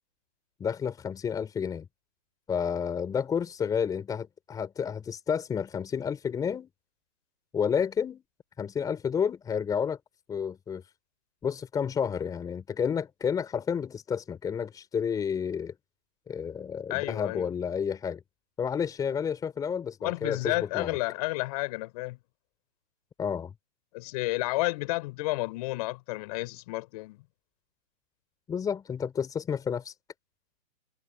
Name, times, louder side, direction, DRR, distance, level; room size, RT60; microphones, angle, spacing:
voice 1, 0.6-1.9 2.5-6.7 7.5-8.2 8.6-10.0 10.3-10.8 11.4-15.8 16.3-18.2 18.6-21.0 23.2-23.5 28.5-29.9, left 7 dB, 10° left, 5.0 m, -30 dB
voice 2, 16.9-17.5 20.0-22.2 23.9-27.2, left 21 dB, 30° left, 7.8 m, -31 dB
hypercardioid pair, 155°, 39 cm